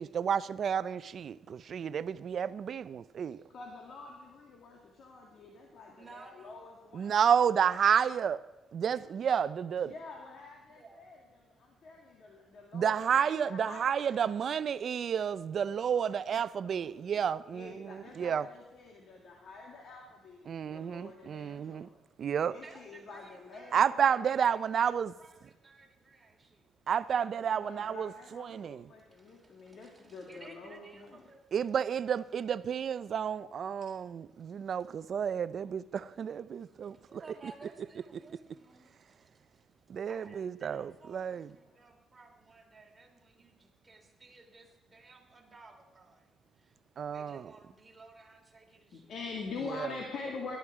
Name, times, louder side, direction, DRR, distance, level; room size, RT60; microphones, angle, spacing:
voice 1, 0.0-3.4 6.9-8.4 8.7-9.9 12.7-18.5 20.5-21.9 22.2-22.5 23.7-25.1 26.9-28.9 31.5-37.5 39.9-41.5 47.0-47.5 49.7-49.9, right 8 dB, 55° right, 0.4 m, -31 dB
voice 2, 3.5-7.1 9.8-11.2 11.5-14.3 14.7-14.8 15.8-16.1 16.4-17.0 17.5-22.0 22.5-24.0 27.6-31.3 48.9-50.6, left 4 dB, 65° left, 2.0 m, -46 dB
voice 3, 6.0-6.6 7.5-8.3 10.7-11.0 22.6-23.8 24.4-26.7 27.2-27.8 29.1-31.9 34.3-34.9 36.6-39.7 40.1-46.8 47.1-49.1, right 3 dB, 25° right, 2.8 m, -56 dB
17.5 x 11.5 x 4.8 m
cardioid pair, 90°, 0 cm